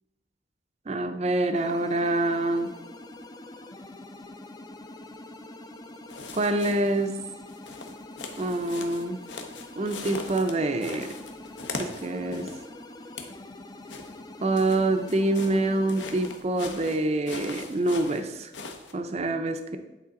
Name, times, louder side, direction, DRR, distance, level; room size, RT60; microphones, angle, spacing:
voice 1, 0.9-2.7 6.3-7.2 8.4-9.2 9.8-11.1 11.8-12.5 14.4-18.5 18.9-19.8, right 2 dB, 35° right, 7 dB, 0.5 m, -26 dB
sound 1, 1.5-16.4, left 2 dB, 20° left, 0.4 m, -45 dB
sound 2, 6.1-7.1 7.5-12.7 13.0-13.4 13.9-18.9, left 4 dB, 75° left, 0.8 m, -40 dB
8.5 x 3.9 x 3.7 m, 1.0 s
head